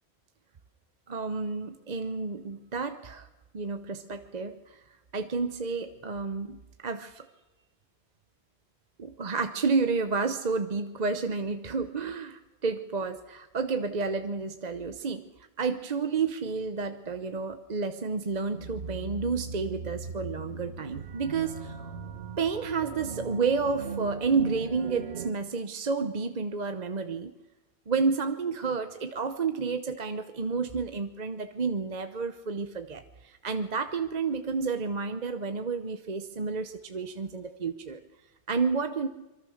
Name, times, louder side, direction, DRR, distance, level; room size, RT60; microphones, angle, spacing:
voice 1, 1.1-3.3 3.5-4.8 5.1-7.3 9.0-15.2 15.6-21.9 22.4-27.3 27.9-38.0 38.5-39.1, right 4 dB, 45° right, 8 dB, 0.9 m, -30 dB
sound 1, 18.5-25.3, right 5 dB, 75° right, 1.6 m, -39 dB
25.0 x 23.5 x 6.5 m, 1.0 s
omnidirectional pair, 1.1 m